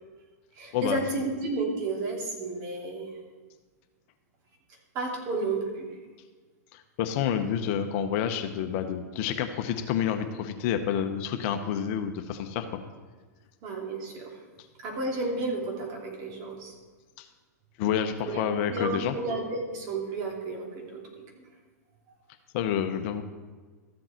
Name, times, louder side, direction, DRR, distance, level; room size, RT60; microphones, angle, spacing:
voice 1, 0.5-3.1 4.9-6.0 13.6-14.4 14.8-16.7 18.3-21.2, right 2 dB, 40° right, -1 dB, 2.9 m, -32 dB
voice 2, 6.7-12.7 17.2-17.3 17.8-19.1 22.5-23.2, left 8 dB, 50° left, 7 dB, 0.9 m, -29 dB
14.0 x 7.7 x 4.4 m, 1.4 s
hypercardioid pair, 125°, 9 cm